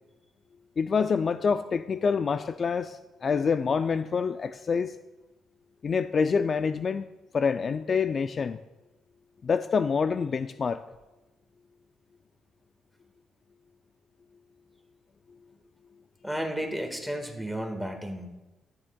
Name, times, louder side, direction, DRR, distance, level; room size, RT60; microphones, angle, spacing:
voice 1, 0.8-4.9 5.8-7.0 7.3-8.6 9.4-10.8, left 5 dB, 45° left, 10 dB, 0.3 m, -26 dB
voice 2, 16.2-18.3, equal, ahead, 4 dB, 1.6 m, -33 dB
13.5 x 9.8 x 2.3 m, 1.1 s
cardioid pair, 90°, 0 cm